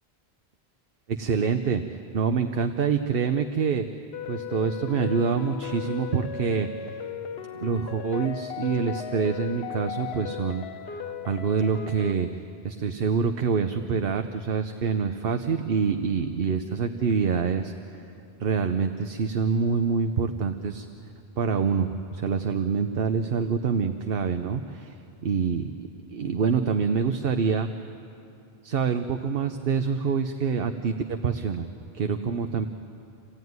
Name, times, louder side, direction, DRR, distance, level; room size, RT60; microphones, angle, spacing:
voice 1, 1.1-1.8 2.1-3.8 4.3-6.7 7.6-12.3 12.6-18.0 18.4-20.9 21.4-25.0 25.2-27.7 28.6-31.7 31.9-32.7, right 6 dB, 65° right, 7 dB, 1.0 m, -26 dB
sound 1, 4.1-12.1, left 8 dB, 80° left, 1.1 m, -36 dB
28.0 x 16.0 x 9.4 m, 2.7 s
omnidirectional pair, 1.0 m